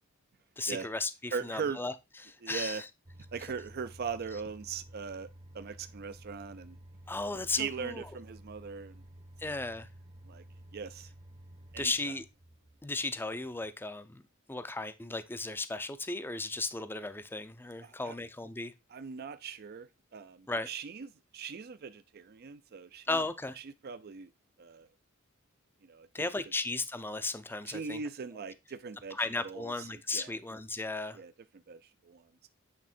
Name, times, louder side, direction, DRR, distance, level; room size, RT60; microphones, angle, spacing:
voice 1, 0.6-1.9 2.2-2.9 7.1-8.1 9.4-9.9 11.8-12.3 12.8-14.2 14.5-18.7 20.5-20.7 23.1-23.6 26.1-28.0 29.1-31.2, left 2 dB, 10° left, 0.5 m, -35 dB
voice 2, 1.3-1.8 2.4-2.8 3.3-5.3 5.5-6.8 7.6-9.0 9.4-9.6 10.3-10.4 10.7-11.1 11.7-11.9 17.8-18.1 18.9-23.2 23.8-24.3 24.6-24.9 25.9-26.1 27.7-29.2 29.4-29.9 30.1-30.4 31.1-31.3 31.7-32.5, right 5 dB, 50° right, 0.4 m, -40 dB
sound 1, 3.0-13.7, right 1 dB, 35° right, 0.8 m, -53 dB
8.4 x 3.6 x 4.3 m
head